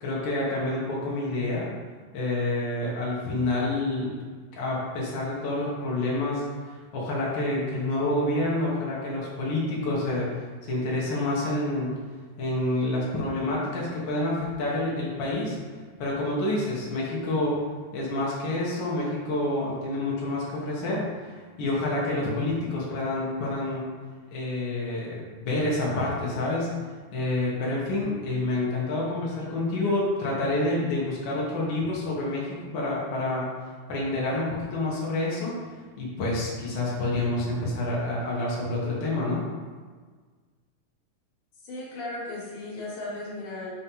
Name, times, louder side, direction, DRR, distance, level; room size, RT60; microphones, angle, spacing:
voice 1, 0.0-1.7 2.1-4.2 4.5-10.3 10.6-11.9 12.4-15.6 16.0-17.6 17.9-23.9 24.3-26.7 27.1-33.5 33.9-35.6 36.0-39.4, left 2 dB, 85° left, -5 dB, 1.0 m, -28 dB
voice 2, 41.6-43.7, left 2 dB, 60° left, -5 dB, 2.5 m, -36 dB
6.2 x 2.9 x 5.4 m, 1.5 s
omnidirectional pair, 4.3 m